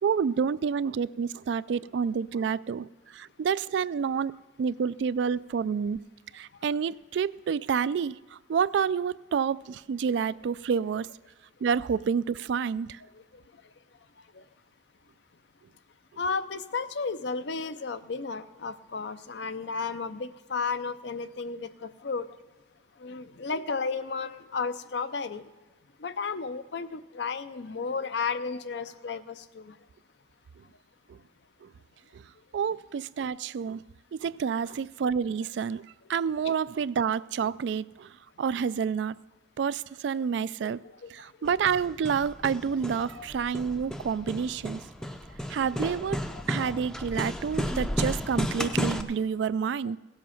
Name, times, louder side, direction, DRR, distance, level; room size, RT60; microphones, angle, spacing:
voice 1, 0.0-6.0 6.3-11.1 11.6-13.0 31.1-31.2 31.6-31.7 32.1-32.2 32.5-33.8 34.1-35.8 36.1-39.2 39.6-40.8 41.1-44.8 45.5-46.2 46.5-50.0, right 6 dB, 70° right, 0.3 m, -29 dB
voice 2, 16.2-22.3 23.0-25.4 26.0-29.7 36.5-36.6 40.3-40.4 40.7-41.1 41.4-41.5 43.1-43.3 46.3-46.4 49.8-49.9, left 4 dB, 70° left, 0.6 m, -33 dB
Hammer, 41.5-49.0, equal, 5° left, 0.5 m, -33 dB
17.0 x 7.7 x 5.8 m
head